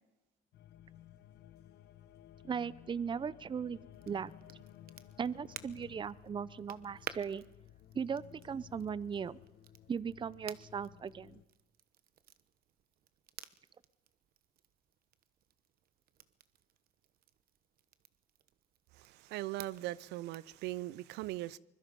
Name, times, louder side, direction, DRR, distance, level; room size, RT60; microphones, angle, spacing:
sound 1, 0.5-11.5, left 12 dB, 75° left, 1.4 m, -56 dB
voice 1, 2.4-3.8 4.1-4.3 5.2-7.4 7.9-9.4 9.9-11.4, right 6 dB, 30° right, 0.6 m, -38 dB
Crackle, 3.9-20.6, right 11 dB, 60° right, 1.1 m, -54 dB
voice 2, 18.9-21.6, right 17 dB, 85° right, 0.6 m, -40 dB
24.5 x 21.5 x 5.3 m
cardioid pair, 110°, 17 cm